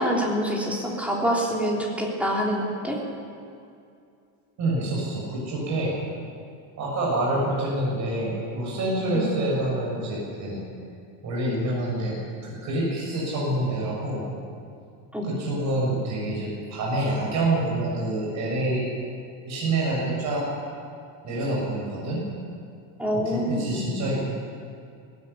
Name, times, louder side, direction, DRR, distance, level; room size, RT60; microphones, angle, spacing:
voice 1, 0.0-3.0 9.1-9.3 15.1-15.3 23.0-23.9, equal, 5° right, -3 dB, 3.4 m, -26 dB
voice 2, 4.6-6.0 6.8-10.6 11.2-12.2 12.4-14.3 15.2-18.9 19.4-20.5 21.2-22.2 23.1-24.3, right 1 dB, 40° right, -4 dB, 6.9 m, -27 dB
19.0 x 16.0 x 9.8 m, 2.4 s
cardioid pair, 175°, 42 cm